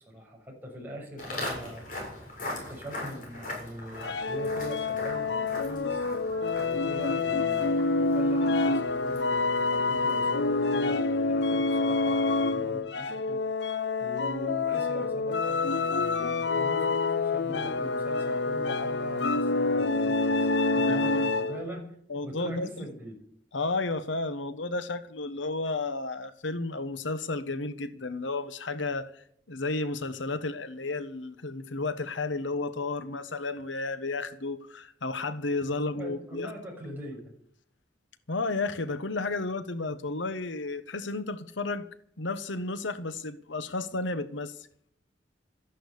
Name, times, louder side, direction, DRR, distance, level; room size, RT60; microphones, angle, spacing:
voice 1, 0.0-2.1 2.7-6.1 6.6-13.4 14.0-20.5 20.7-21.9 22.2-23.2 35.9-37.3, equal, 10° right, 6.3 m, -42 dB
Walk footsteps, 1.2-10.4, left 1 dB, 45° left, 7.5 m, -41 dB
sound 1, 3.9-12.8, right 2 dB, 75° right, 4.7 m, -51 dB
sound 2, 4.0-21.7, left 3 dB, 65° left, 0.7 m, -27 dB
voice 2, 20.7-21.2 22.1-22.9 23.5-36.5 38.3-41.9 42.2-44.6, left 3 dB, 85° left, 1.2 m, -32 dB
14.0 x 11.0 x 8.4 m
head